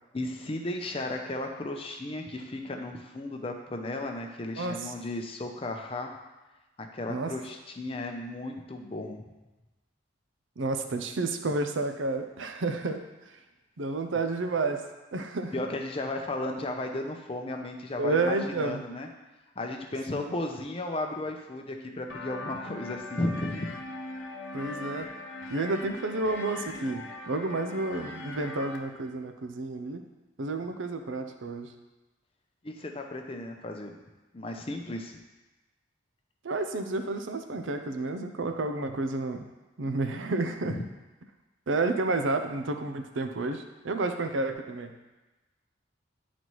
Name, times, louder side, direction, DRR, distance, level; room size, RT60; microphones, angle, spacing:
voice 1, 0.1-6.2 6.8-9.3 15.5-19.1 19.6-23.8 32.6-34.0 34.3-35.2 40.7-40.8, left 2 dB, 30° left, 3 dB, 0.6 m, -35 dB
voice 2, 4.6-4.9 7.1-7.3 10.6-13.0 13.8-14.8 15.1-15.6 18.0-18.8 20.1-20.2 24.5-25.1 25.5-30.0 30.4-31.7 36.4-39.5 39.8-40.8 41.7-44.9, right 2 dB, 80° right, 7 dB, 0.6 m, -30 dB
sound 1, 22.1-28.8, left 2 dB, 70° left, 0.6 m, -40 dB
10.5 x 4.2 x 3.1 m, 1.1 s
head